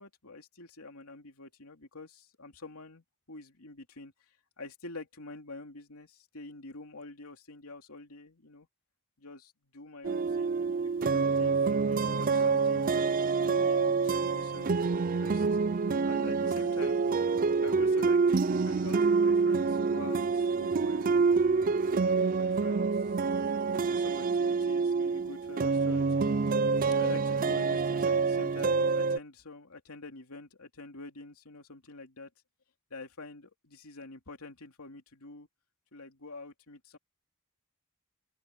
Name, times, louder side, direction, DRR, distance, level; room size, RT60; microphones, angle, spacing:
voice 1, 0.0-4.1 4.6-8.7 9.2-15.5 16.0-17.0 17.6-23.2 23.8-26.4 27.0-32.3 32.9-35.5 35.9-37.0, left 3 dB, 75° left, 2.9 m, -47 dB
sound 1, 10.0-29.2, right 4 dB, 40° right, 0.4 m, -27 dB
open air
head